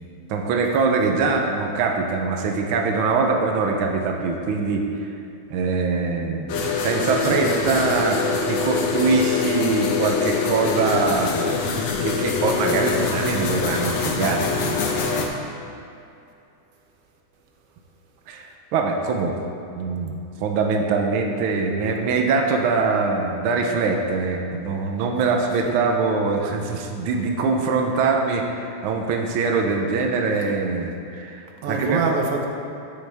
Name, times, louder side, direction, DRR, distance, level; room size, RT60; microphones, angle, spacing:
voice 1, 0.3-5.1 5.5-6.5 6.8-8.2 8.5-11.3 12.0-15.5 18.3-19.4 19.8-32.0, right 4 dB, 90° right, 2 dB, 1.1 m, -23 dB
sound 1, 6.5-15.3, left 4 dB, 70° left, 2.0 m, -24 dB
voice 2, 7.3-7.6 25.2-25.3 25.7-25.8 31.6-32.5, right 4 dB, 65° right, 2 dB, 1.6 m, -25 dB
13.0 x 7.3 x 3.5 m, 2.7 s
omnidirectional pair, 3.4 m